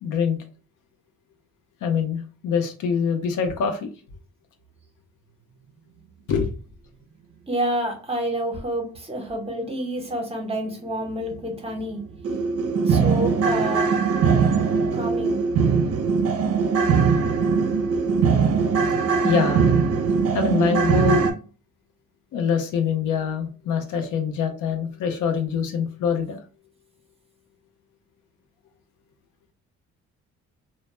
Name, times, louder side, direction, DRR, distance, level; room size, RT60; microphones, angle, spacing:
voice 1, 0.0-0.4 1.8-3.9 6.3-6.6 19.2-19.7 20.3-21.3 22.3-26.4, left 6 dB, 80° left, 6 dB, 0.6 m, -24 dB
voice 2, 7.5-12.0 12.9-14.0 14.9-15.4, right 1 dB, 20° right, 2 dB, 0.8 m, -28 dB
sound 1, 11.3-11.4 11.8-11.9 12.2-21.3, right 5 dB, 55° right, 0.5 m, -21 dB
2.1 x 2.1 x 2.9 m, 0.37 s
cardioid pair, 90°, 30 cm